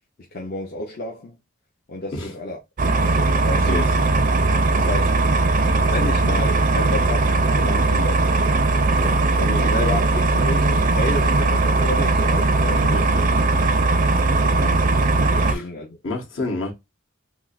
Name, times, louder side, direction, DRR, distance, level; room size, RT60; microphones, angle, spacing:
voice 1, 0.3-1.4 1.9-2.6 3.0-3.8 4.7-5.4 5.8-8.3 9.0-12.9 14.5-14.8 15.3-16.0, left 2 dB, 45° left, 0.6 m, -31 dB
sound 1, 2.8-15.5, right 3 dB, 40° right, 0.4 m, -19 dB
voice 2, 12.9-13.4 15.4-15.6 16.0-16.7, left 2 dB, 70° left, 1.3 m, -29 dB
6.0 x 2.0 x 2.4 m
head